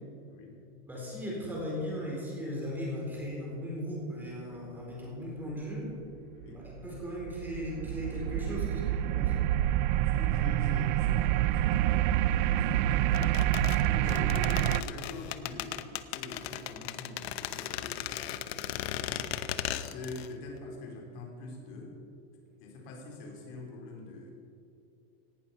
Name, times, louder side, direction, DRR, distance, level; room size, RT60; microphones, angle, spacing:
voice 1, 0.3-0.6 6.4-6.6 10.0-13.5 13.8-19.3 19.7-22.0 22.6-24.3, left 3 dB, 50° left, 0 dB, 3.7 m, -44 dB
voice 2, 0.9-5.9 6.5-9.3, equal, 5° right, -4 dB, 4.1 m, -37 dB
sound 1, 6.4-14.8, right 13 dB, 55° right, 0.4 m, -27 dB
sound 2, 13.1-20.3 20.6-20.7, left 13 dB, 85° left, 0.9 m, -36 dB
18.0 x 12.0 x 5.4 m, 2.6 s
supercardioid pair, 175°, 30 cm